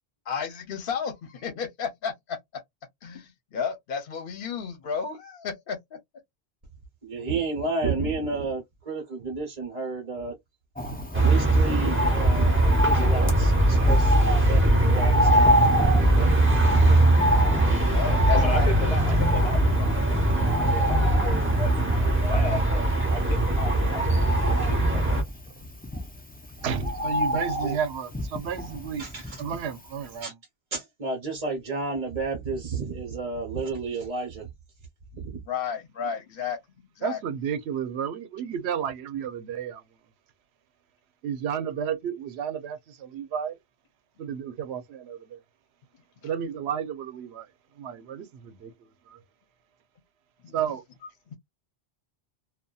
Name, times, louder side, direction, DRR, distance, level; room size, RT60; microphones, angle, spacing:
voice 1, 0.3-2.4 3.0-6.0 17.9-18.7 35.4-37.2 50.4-50.5 51.3-51.4, left 6 dB, 60° left, 0.9 m, -33 dB
voice 2, 7.0-10.4 10.9-16.9 27.6-27.7 29.0-29.4 30.2-30.3 30.7-34.5 35.1-35.4, right 4 dB, 40° right, 0.8 m, -32 dB
Bird, 10.8-29.9 30.2-30.3, equal, 15° left, 0.4 m, -29 dB
sound 1, 11.1-25.2, right 1 dB, 15° right, 0.9 m, -21 dB
voice 3, 18.0-25.2, left 3 dB, 35° left, 0.9 m, -36 dB
voice 4, 26.6-29.1 29.4-30.4 37.0-39.8 41.2-43.6 44.2-45.4 46.2-47.5 47.8-48.7 49.1-49.2 50.5-50.8, right 7 dB, 90° right, 0.8 m, -32 dB
2.6 x 2.3 x 2.2 m
omnidirectional pair, 1.1 m